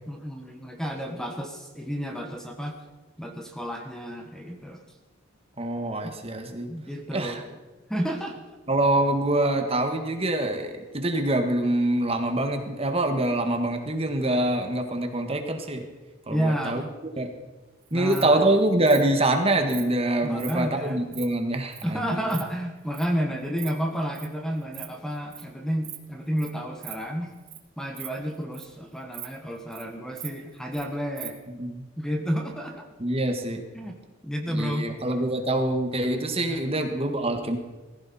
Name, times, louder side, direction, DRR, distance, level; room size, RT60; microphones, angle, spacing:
voice 1, 0.1-2.8 3.2-4.8 6.0-6.2 6.6-7.4 7.9-8.4 16.3-16.8 17.9-18.4 20.2-21.0 21.8-27.3 27.8-31.4 32.0-32.9 33.7-34.0 34.2-34.9 36.5-36.6, equal, 5° left, 3 dB, 1.2 m, -31 dB
voice 2, 5.6-6.7 7.1-7.4 8.7-15.8 16.3-16.8 17.2-17.3 17.9-22.2 31.6-31.8 33.0-33.6 34.5-37.6, right 1 dB, 30° right, 5 dB, 1.5 m, -25 dB
Insect, 17.8-18.2 18.8-19.0 19.7-19.9 20.3-20.5 20.9-21.2 21.7-21.8 22.1-22.4 22.9-23.1 23.4-23.7 23.9-24.3 24.6-24.9 25.1-25.4 25.8-26.0 26.4-26.5 26.8-26.9 27.3-27.6 27.9-28.8 29.1-29.3 29.5-29.8 30.1-30.8 31.1-31.3, right 13 dB, 45° right, 1.6 m, -40 dB
18.5 x 15.5 x 4.2 m, 1.2 s
head